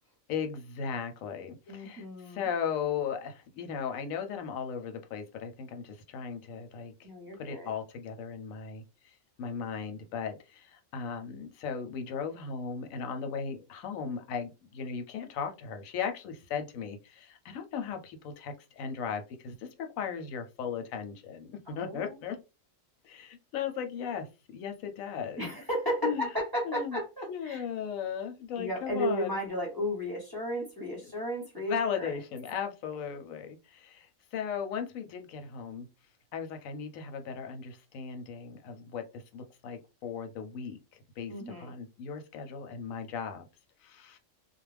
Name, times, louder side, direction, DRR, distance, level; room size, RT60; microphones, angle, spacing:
voice 1, 0.3-6.9 7.3-22.4 23.0-24.3 24.5-25.6 26.0-26.3 26.6-27.0 27.3-29.4 31.6-35.9 36.3-40.8 41.2-41.3 41.6-43.5 43.8-44.2, left 7 dB, 90° left, 1.0 m, -37 dB
voice 2, 1.7-2.5 7.0-7.7 21.7-22.1 25.4-27.6 28.6-32.2 41.3-41.7, equal, 20° right, 0.7 m, -34 dB
2.4 x 2.1 x 3.2 m
omnidirectional pair, 1.4 m